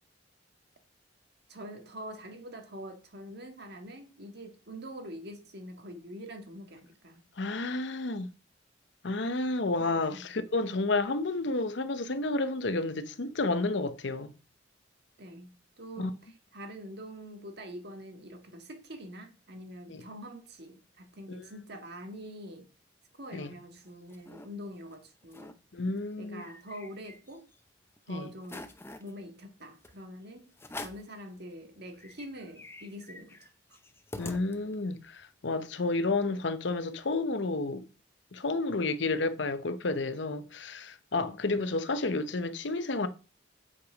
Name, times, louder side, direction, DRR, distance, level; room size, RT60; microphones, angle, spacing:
voice 1, 1.5-7.2 9.8-10.2 15.2-15.5 15.8-22.7 23.2-25.6 26.2-27.5 28.1-28.7 29.0-30.5 30.8-33.4 41.3-41.4, equal, 55° right, 1.7 m, -45 dB
voice 2, 7.4-8.3 9.0-14.3 16.0-16.1 19.9-20.0 21.3-21.4 23.3-23.5 25.7-26.4 28.1-28.3 34.2-37.9 38.3-43.1, left 3 dB, 65° left, 0.7 m, -31 dB
sound 1, 23.6-24.5 24.9-25.0 25.2-25.6 26.0-27.6 28.0-28.1 28.4-29.1 29.8-30.0 30.6-31.1 31.6-31.7 31.9-34.9, left 2 dB, 10° left, 0.7 m, -45 dB
8.2 x 5.8 x 5.0 m
head